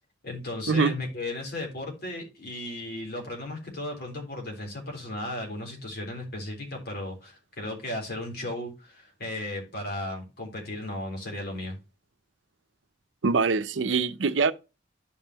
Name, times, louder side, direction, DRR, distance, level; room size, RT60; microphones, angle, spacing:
voice 1, 0.2-11.8, left 1 dB, 60° left, 3.7 m, -35 dB
voice 2, 13.2-14.5, right 4 dB, 90° right, 0.6 m, -23 dB
11.0 x 5.5 x 2.9 m
head